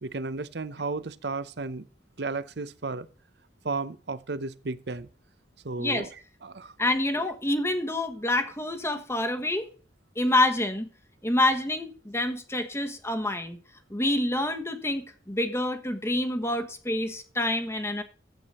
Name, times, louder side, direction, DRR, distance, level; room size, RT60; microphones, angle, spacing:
voice 1, 0.0-1.9 2.2-3.1 3.6-5.1 5.6-6.1 6.4-6.7, right 3 dB, 65° right, 0.8 m, -33 dB
voice 2, 6.8-9.7 10.2-10.9 11.2-13.6 13.9-18.0, left 1 dB, 15° left, 1.2 m, -27 dB
12.0 x 8.3 x 4.3 m
head